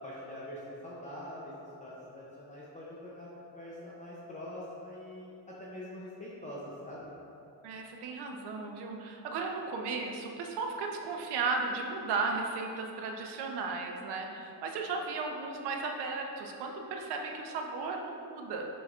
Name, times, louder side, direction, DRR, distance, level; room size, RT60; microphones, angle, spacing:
voice 1, 0.0-1.5 1.8-7.1, left 1 dB, 20° left, -7 dB, 0.6 m, -44 dB
voice 2, 7.6-18.6, right 4 dB, 80° right, 2 dB, 0.8 m, -35 dB
7.8 x 5.2 x 2.4 m, 2.7 s
cardioid pair, 165°, 40 cm